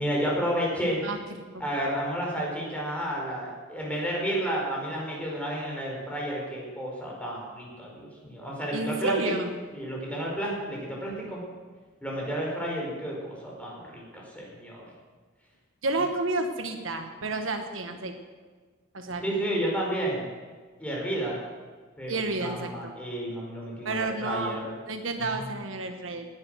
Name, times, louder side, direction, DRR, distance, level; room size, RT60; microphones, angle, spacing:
voice 1, 0.0-1.0 1.6-9.3 9.7-11.4 12.0-14.8 19.2-20.2 20.8-21.4 22.0-24.7 25.2-25.5, right 1 dB, 5° left, -3 dB, 4.9 m, -31 dB
voice 2, 1.0-1.4 8.7-9.5 15.8-18.1 18.9-19.2 22.1-22.9 23.8-24.6 24.9-26.3, right 2 dB, 70° right, 5 dB, 1.4 m, -30 dB
19.0 x 10.5 x 6.3 m, 1.5 s
head